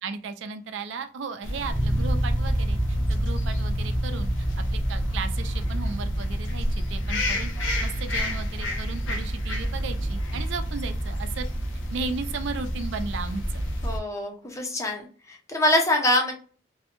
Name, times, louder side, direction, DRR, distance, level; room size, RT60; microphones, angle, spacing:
voice 1, 0.0-4.5 4.7-11.5 11.9-13.4, right 4 dB, 65° right, 9 dB, 0.4 m, -35 dB
sound 1, 1.4-14.0, equal, 70° left, 0.6 m, -29 dB
sound 2, 1.7-11.4, equal, 25° right, 0.6 m, -31 dB
voice 2, 13.8-15.0 15.3-16.3, left 1 dB, 15° left, 2 dB, 0.5 m, -24 dB
2.6 x 2.1 x 2.8 m, 0.38 s
head